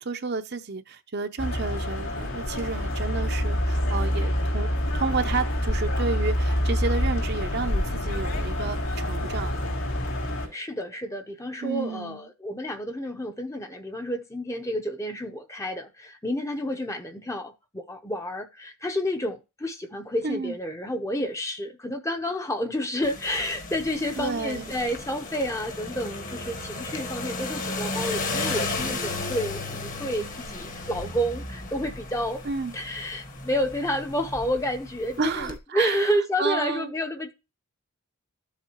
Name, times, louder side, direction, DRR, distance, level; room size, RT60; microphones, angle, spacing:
voice 1, 0.0-9.6 11.6-12.3 20.2-20.6 24.2-24.7 32.4-32.7 35.2-36.1 36.4-36.9, right 4 dB, 50° right, 0.7 m, -31 dB
sound 1, 1.4-10.5, equal, 70° left, 4.0 m, -27 dB
voice 2, 10.5-32.4 32.7-37.3, equal, 15° left, 0.7 m, -30 dB
sound 2, 23.0-35.6, left 3 dB, 40° left, 1.3 m, -34 dB
13.0 x 7.3 x 3.0 m
head